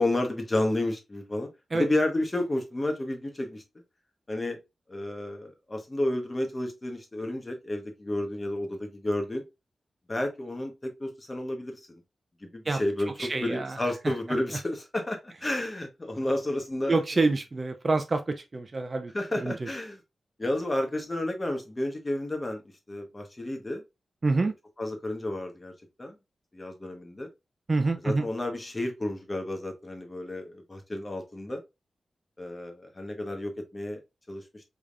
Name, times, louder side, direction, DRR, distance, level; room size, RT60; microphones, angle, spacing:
voice 1, 0.0-1.5 1.7-3.6 4.3-4.6 4.9-9.4 10.1-11.8 12.4-17.0 19.1-20.0 20.4-22.6 22.9-23.8 24.3-24.5 24.8-25.7 26.0-26.2 26.5-27.3 28.0-31.6 32.4-34.0 34.3-34.6, left 1 dB, 25° left, 1.2 m, -31 dB
voice 2, 13.2-13.8 14.0-14.1 16.9-19.1 19.4-19.7 24.2-24.5 27.7-28.3, right 3 dB, 35° right, 0.5 m, -27 dB
5.0 x 3.6 x 2.5 m
wide cardioid pair, 115°, 0 cm